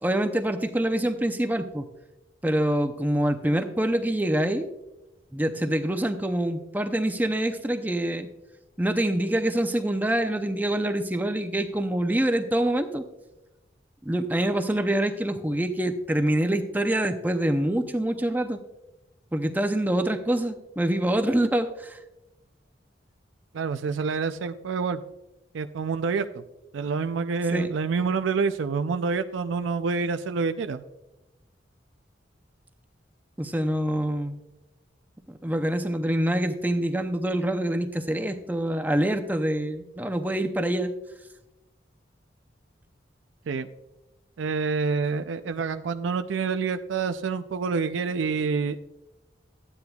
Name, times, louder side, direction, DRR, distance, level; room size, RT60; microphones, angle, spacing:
voice 1, 0.0-1.9 2.4-4.7 5.3-8.3 8.8-13.0 14.0-18.6 19.3-22.0 27.5-27.7 33.4-34.4 35.3-40.9, right 1 dB, 10° right, 6 dB, 0.5 m, -25 dB
voice 2, 23.5-25.0 25.5-26.4 26.7-30.8 43.5-43.7 44.4-48.8, right 5 dB, 85° right, 9 dB, 0.4 m, -27 dB
14.0 x 9.8 x 2.3 m, 0.98 s
head